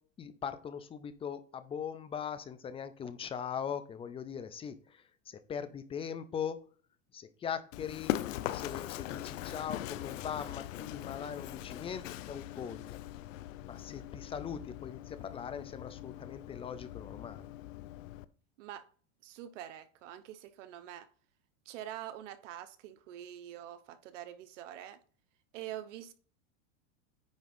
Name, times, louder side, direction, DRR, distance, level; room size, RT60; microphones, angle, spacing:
voice 1, 0.2-6.7 7.1-8.1 8.5-12.8 13.6-17.5, left 7 dB, 15° left, 0.5 m, -40 dB
Run, 7.7-18.2, left 14 dB, 80° left, 0.7 m, -41 dB
voice 2, 19.2-21.1 21.6-25.0 25.5-26.1, right 11 dB, 70° right, 1.1 m, -45 dB
9.5 x 3.7 x 5.3 m
supercardioid pair, 145°, 38 cm